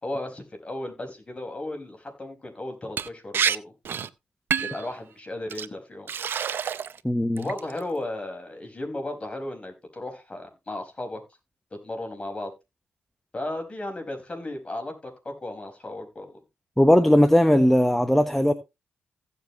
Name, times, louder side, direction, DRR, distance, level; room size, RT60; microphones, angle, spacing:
voice 1, 0.0-3.7 4.6-6.1 7.4-11.2 11.7-12.5 13.3-16.3, left 1 dB, 30° left, 5.0 m, -35 dB
Liquid, 3.0-3.1 3.3-3.6 3.8-4.1 4.5-4.8 5.5-5.7 6.1-7.0 7.4-7.8, right 8 dB, 65° right, 0.6 m, -27 dB
voice 2, 7.0-7.4 16.8-18.5, equal, 5° left, 1.0 m, -18 dB
16.0 x 7.4 x 3.0 m
supercardioid pair, 55°, 4 cm